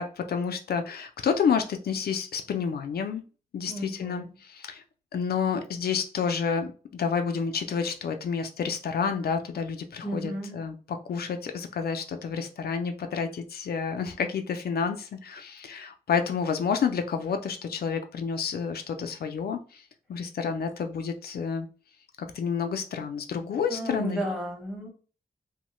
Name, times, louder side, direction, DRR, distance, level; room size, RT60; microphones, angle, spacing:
voice 1, 0.0-3.2 3.5-4.8 5.1-19.8 20.1-21.7 22.2-24.2, left 6 dB, 85° left, 0.4 m, -29 dB
voice 2, 3.7-4.3 10.0-10.6 23.7-24.9, equal, 5° right, 1.0 m, -33 dB
3.0 x 2.1 x 3.0 m
wide cardioid pair, 155°, 16 cm